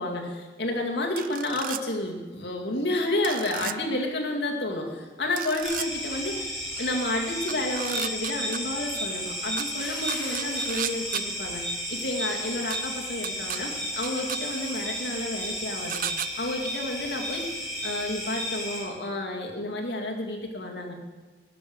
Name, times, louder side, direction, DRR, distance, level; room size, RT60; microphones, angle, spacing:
voice 1, 0.0-16.0 16.4-17.5 17.8-20.9, left 1 dB, 65° left, 0 dB, 2.3 m, -30 dB
sound 1, 1.2-1.8 3.2-3.7 5.4-5.9 7.5-8.6 9.6-9.7 10.1-11.2 12.7-12.8 13.2-13.6 14.0-14.4 15.9-16.3, right 11 dB, 45° right, 0.3 m, -33 dB
sound 2, 5.6-18.8, equal, ahead, 4.5 m, -33 dB
12.5 x 7.1 x 9.5 m, 1.3 s
head